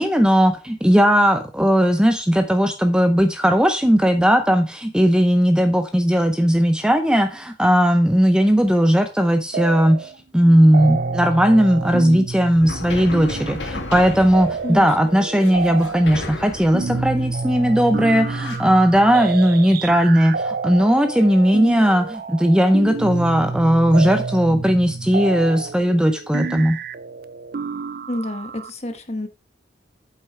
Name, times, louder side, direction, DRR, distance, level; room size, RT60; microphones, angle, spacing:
voice 1, 0.0-26.8, equal, 5° right, 7 dB, 0.7 m, -17 dB
sound 1, 9.5-10.2 10.4-28.7, right 4 dB, 55° right, 0.5 m, -29 dB
sound 2, 12.6-18.6, left 2 dB, 90° left, 2.2 m, -34 dB
voice 2, 28.1-29.3, left 1 dB, 35° left, 8 dB, 1.3 m, -28 dB
8.2 x 5.8 x 4.7 m, 0.30 s
head